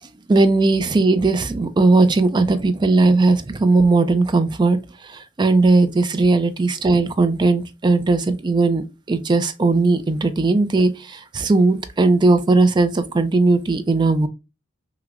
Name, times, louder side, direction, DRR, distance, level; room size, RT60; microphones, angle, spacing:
voice 1, 0.3-4.8 5.0-14.3, right 3 dB, 20° right, 0.3 m, -18 dB
5.8 x 2.0 x 2.4 m
head